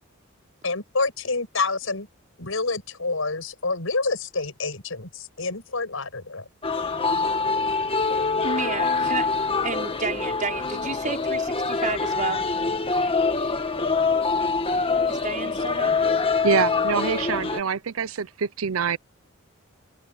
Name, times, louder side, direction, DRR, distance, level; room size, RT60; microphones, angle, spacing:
voice 1, 0.6-2.1 2.4-6.4, left 3 dB, 75° left, 6.6 m, -28 dB
sound 1, 6.6-17.6, left 4 dB, 25° left, 1.6 m, -25 dB
voice 2, 8.4-9.3 9.6-12.4 15.1-15.9, right 4 dB, 40° right, 5.2 m, -31 dB
voice 3, 16.4-18.3 18.6-19.0, right 6 dB, 90° right, 0.6 m, -24 dB
head